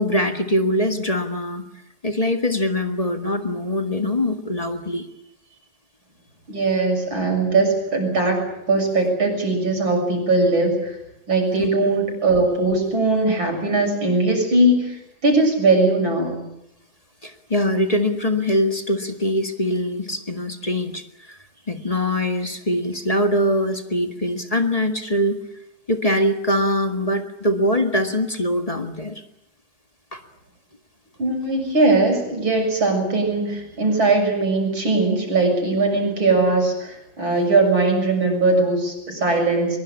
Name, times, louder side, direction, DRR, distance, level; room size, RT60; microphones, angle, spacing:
voice 1, 0.0-1.6 2.0-5.0 11.6-11.7 17.2-21.4 21.7-25.4 25.9-29.2 30.1-30.2, left 1 dB, 20° left, 6 dB, 1.8 m, -23 dB
voice 2, 6.5-8.4 8.7-11.0 11.3-16.4 31.2-39.8, right 2 dB, 75° right, 3 dB, 7.8 m, -20 dB
23.0 x 23.0 x 8.6 m, 0.80 s
omnidirectional pair, 2.2 m